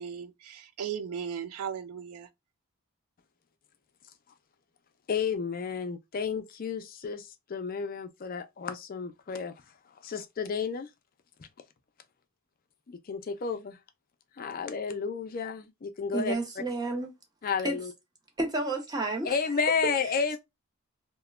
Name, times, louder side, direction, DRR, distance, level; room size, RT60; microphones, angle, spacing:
voice 1, 0.0-2.3, right 7 dB, 80° right, 0.4 m, -37 dB
voice 2, 5.1-9.5 10.0-10.9 12.9-13.8 14.4-16.3 17.4-17.9 19.2-20.4, left 5 dB, 40° left, 0.4 m, -31 dB
voice 3, 16.1-17.1 17.6-17.8 18.4-19.3, right 2 dB, 20° right, 0.7 m, -30 dB
2.9 x 2.1 x 2.3 m
head